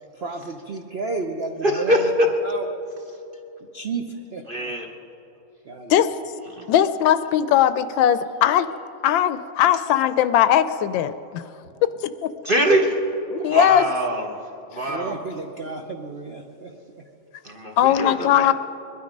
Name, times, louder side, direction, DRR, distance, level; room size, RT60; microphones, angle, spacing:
voice 1, 0.1-2.1 2.4-2.6 3.6-4.8 5.6-6.0 13.4-13.5 14.9-17.1 18.3-18.5, right 4 dB, 65° right, 3 dB, 0.6 m, -32 dB
voice 2, 1.6-2.3 4.5-4.9 6.5-6.7 12.4-13.0 13.5-15.2 17.4-18.5, equal, 35° right, 2 dB, 1.0 m, -23 dB
voice 3, 6.7-8.7 9.0-11.4 13.3-13.8 17.8-18.5, left 10 dB, 75° left, 12 dB, 1.2 m, -19 dB
21.5 x 12.0 x 5.3 m, 2.9 s
omnidirectional pair, 2.2 m